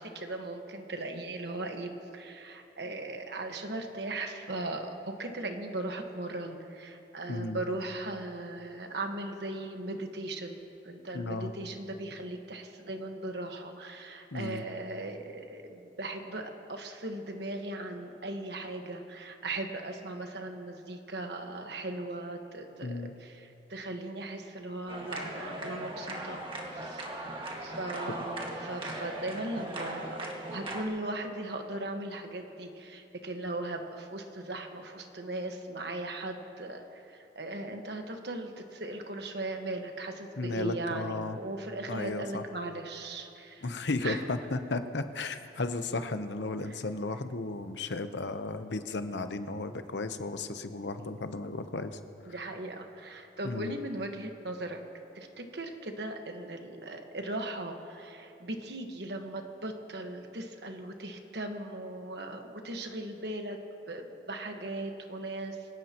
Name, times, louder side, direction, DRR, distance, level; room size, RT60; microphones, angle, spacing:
voice 1, 0.0-26.4 26.7-27.1 27.6-43.7 44.0-44.2 46.6-46.8 52.3-54.8 55.1-63.6 63.9-65.6, right 2 dB, 65° right, 4 dB, 1.4 m, -38 dB
voice 2, 7.3-7.6 11.1-11.5 14.3-14.6 22.8-23.1 40.4-41.4 41.9-42.4 43.6-52.0 53.4-53.7, left 3 dB, 80° left, 9 dB, 0.8 m, -34 dB
sound 1, 24.9-30.8, right 1 dB, 30° right, 1.8 m, -39 dB
25.5 x 17.5 x 3.0 m, 2.8 s
head